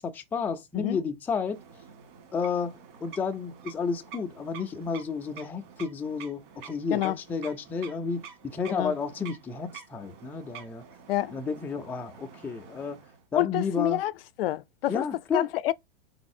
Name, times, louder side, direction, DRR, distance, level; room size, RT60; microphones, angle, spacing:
voice 1, 0.0-1.6 2.3-10.8 11.3-13.0 13.3-14.0 14.9-15.5, left 5 dB, 5° left, 0.3 m, -31 dB
sound 1, 1.4-13.2, right 8 dB, 55° right, 1.9 m, -48 dB
voice 2, 13.4-14.1 14.4-15.0 15.3-15.7, left 15 dB, 70° left, 0.4 m, -27 dB
4.1 x 4.0 x 2.6 m
hypercardioid pair, 135°, 30 cm